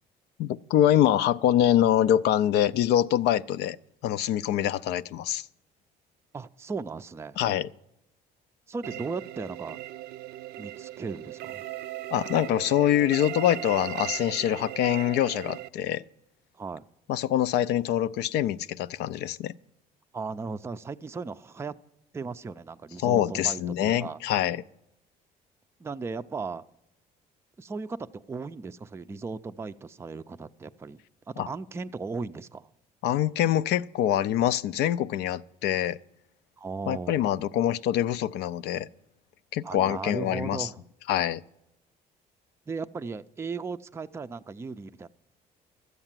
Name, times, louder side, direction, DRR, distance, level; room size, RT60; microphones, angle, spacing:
voice 1, 0.4-3.8 4.0-5.4 7.4-7.7 12.1-16.0 17.1-19.5 23.0-24.6 31.4-31.5 33.0-36.0 36.9-38.9 39.5-40.7 41.1-41.4, left 11 dB, 80° left, 0.4 m, -25 dB
voice 2, 6.3-7.4 8.7-9.8 10.6-11.7 16.6-16.9 20.1-21.7 22.1-24.2 25.8-26.6 27.6-31.0 31.3-32.7 36.6-37.2 39.6-40.8 42.7-45.1, right 4 dB, 15° right, 0.4 m, -36 dB
sound 1, 8.8-15.7, right 15 dB, 75° right, 0.5 m, -38 dB
13.0 x 8.0 x 7.4 m
cardioid pair, 110°, 17 cm